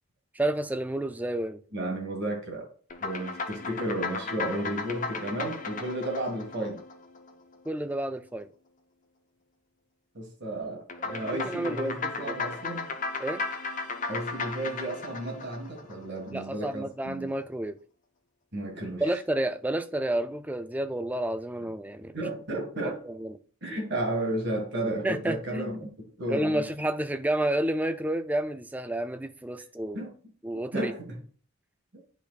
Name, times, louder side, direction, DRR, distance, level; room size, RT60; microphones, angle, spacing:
voice 1, 0.3-1.6 7.7-8.5 11.4-11.9 13.2-13.4 16.3-17.8 19.0-22.2 23.1-23.3 25.0-25.8 26.3-30.0 30.4-30.9, right 1 dB, 5° right, 0.3 m, -30 dB
voice 2, 1.7-2.7 3.0-6.8 10.1-12.9 14.1-17.3 18.5-19.2 21.6-21.7 22.1-23.0 23.6-25.9 26.2-26.6 29.9-30.1 30.5-31.2, right 1 dB, 50° right, 1.8 m, -33 dB
sound 1, 2.9-7.6 10.9-16.3, left 4 dB, 35° left, 0.6 m, -35 dB
10.5 x 4.1 x 2.4 m
head